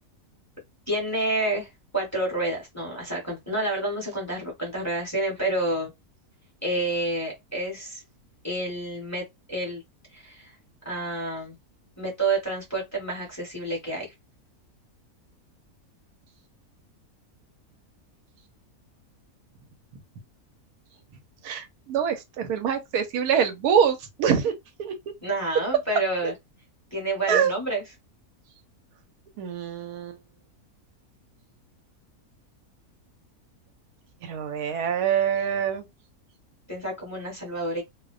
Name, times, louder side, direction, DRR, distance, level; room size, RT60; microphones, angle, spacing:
voice 1, 0.9-5.9 6.6-8.0 8.4-9.8 10.1-10.5 10.8-11.5 12.0-14.1 25.2-26.3 26.9-27.8 36.7-37.8, right 2 dB, 10° left, 1.0 m, -29 dB
voice 2, 21.4-24.9 27.3-27.5 29.4-30.2 34.2-35.8, right 8 dB, 85° right, 1.1 m, -25 dB
2.5 x 2.1 x 2.3 m
omnidirectional pair, 1.6 m